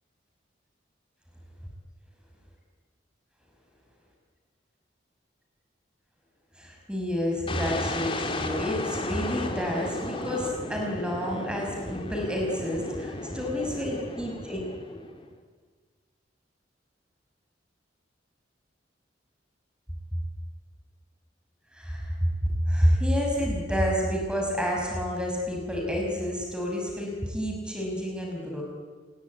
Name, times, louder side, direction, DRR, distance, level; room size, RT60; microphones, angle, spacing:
voice 1, 6.5-15.0 21.7-28.6, equal, 5° right, -1 dB, 5.7 m, -29 dB
sound 1, 7.5-15.3, left 2 dB, 30° left, 2.8 m, -34 dB
28.5 x 21.0 x 9.6 m, 1.5 s
head